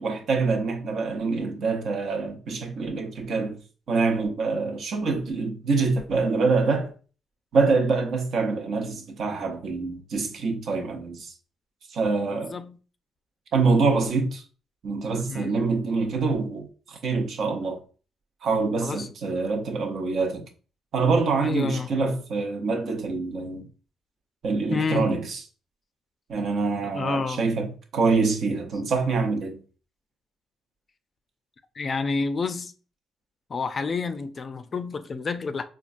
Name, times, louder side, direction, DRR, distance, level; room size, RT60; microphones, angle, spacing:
voice 1, 0.0-3.6 3.9-6.9 7.5-11.3 11.9-12.6 13.5-14.4 14.8-17.8 18.4-20.5 20.9-23.7 24.4-25.4 26.3-29.6, right 4 dB, 65° right, 0.8 m, -25 dB
voice 2, 21.4-21.9 24.7-25.1 26.9-27.4 31.8-32.7 33.5-35.6, left 4 dB, 40° left, 0.4 m, -29 dB
4.5 x 2.3 x 2.5 m
cardioid pair, 90°, 0 cm